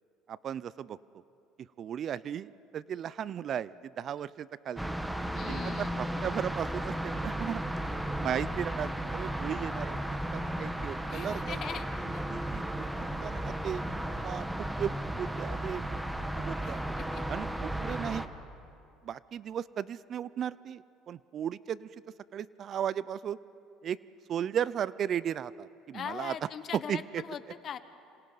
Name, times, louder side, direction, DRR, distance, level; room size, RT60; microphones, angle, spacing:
voice 1, 0.3-1.0 1.6-4.8 5.5-10.0 10.3-11.6 12.3-12.7 13.2-16.0 16.4-16.8 17.3-18.3 19.0-21.9 22.3-23.4 23.8-24.0 24.3-26.3 26.9-27.2, right 9 dB, 45° right, 19 dB, 0.4 m, -36 dB
sound 1, 4.8-18.3, right 1 dB, 5° right, 1.2 m, -34 dB
voice 2, 5.3-6.0 11.1-11.9 12.1-12.3 16.6-17.2 25.9-27.8, left 8 dB, 45° left, 12 dB, 1.1 m, -41 dB
27.0 x 26.5 x 4.0 m, 2.6 s
supercardioid pair, 105°, 0 cm